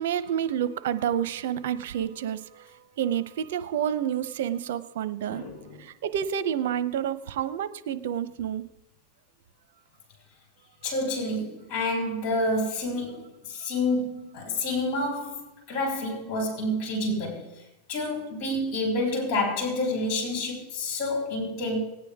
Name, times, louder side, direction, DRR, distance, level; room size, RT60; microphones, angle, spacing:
voice 1, 0.0-5.5 5.8-8.6, right 9 dB, 75° right, 14 dB, 0.8 m, -29 dB
voice 2, 5.3-5.8 10.8-17.6 17.9-21.8, left 1 dB, 50° left, 1 dB, 5.8 m, -29 dB
18.5 x 9.7 x 3.6 m, 0.85 s
supercardioid pair, 125°, 0 cm